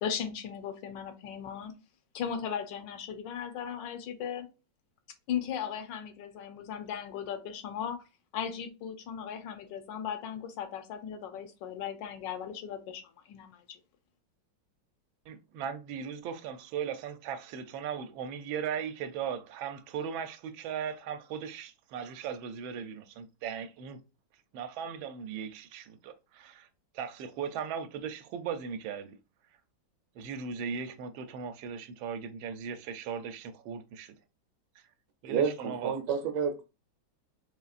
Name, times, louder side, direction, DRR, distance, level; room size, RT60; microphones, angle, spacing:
voice 1, 0.0-1.7 2.1-4.5 5.3-8.0 8.3-13.0 13.3-13.8, left 8 dB, 75° left, 1.3 m, -37 dB
voice 2, 15.3-24.0 24.5-26.7 26.9-29.1 30.2-34.2 35.2-36.0, right 7 dB, 85° right, 1.4 m, -38 dB
voice 3, 35.3-36.6, right 7 dB, 70° right, 1.3 m, -30 dB
4.2 x 3.2 x 2.4 m
omnidirectional pair, 2.1 m